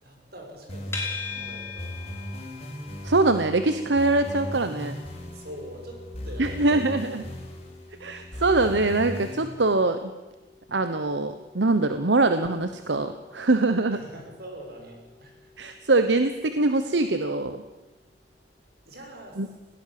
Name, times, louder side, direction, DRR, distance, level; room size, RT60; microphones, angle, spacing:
voice 1, 0.0-2.3 5.3-6.8 13.9-15.5 18.9-19.4, equal, 60° right, 2 dB, 6.1 m, -44 dB
sound 1, 0.7-9.4, equal, 35° left, 4.7 m, -38 dB
sound 2, 0.9-18.1, left 5 dB, 15° left, 4.8 m, -44 dB
voice 2, 3.0-4.9 6.4-7.2 8.0-10.1 10.7-14.0 15.6-17.6 19.4-19.5, right 2 dB, 85° right, 9 dB, 1.1 m, -23 dB
20.5 x 18.0 x 7.7 m, 1.1 s
head